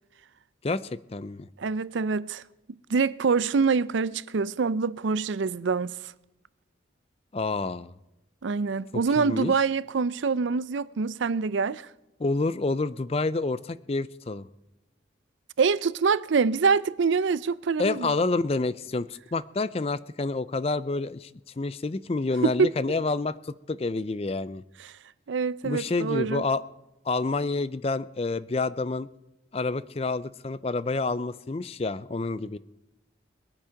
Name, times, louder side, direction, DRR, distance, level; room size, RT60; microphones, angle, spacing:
voice 1, 0.6-1.5 7.3-7.9 9.2-9.5 12.2-14.5 17.8-21.3 21.6-24.6 25.6-26.6 27.1-29.1 29.5-32.6, left 3 dB, 30° left, 0.4 m, -28 dB
voice 2, 1.6-2.4 2.9-5.9 8.4-11.9 15.6-18.1 22.4-22.7 24.8-24.9 25.3-26.4, right 5 dB, 80° right, 0.5 m, -25 dB
21.5 x 8.7 x 5.8 m
head